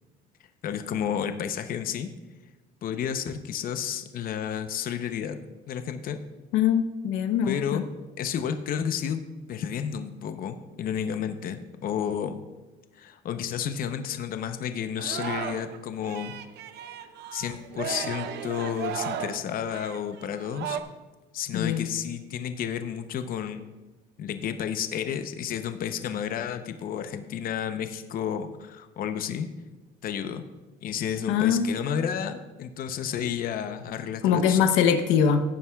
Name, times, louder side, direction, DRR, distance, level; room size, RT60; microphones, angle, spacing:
voice 1, 0.6-2.1 2.8-5.4 5.7-6.2 7.5-7.9 8.2-9.2 9.5-12.3 12.9-16.3 17.3-20.8 21.3-23.6 24.2-29.5 30.0-30.4 30.8-34.7, left 8 dB, 50° left, 8 dB, 0.7 m, -31 dB
voice 2, 6.5-7.8 21.5-21.9 31.3-31.7 34.2-35.4, left 8 dB, 85° left, 9 dB, 0.9 m, -22 dB
Singing, 15.0-15.8 16.0-20.8, right 8 dB, 60° right, 0.7 m, -35 dB
17.0 x 9.6 x 2.3 m, 1.2 s
cardioid pair, 125°, 19 cm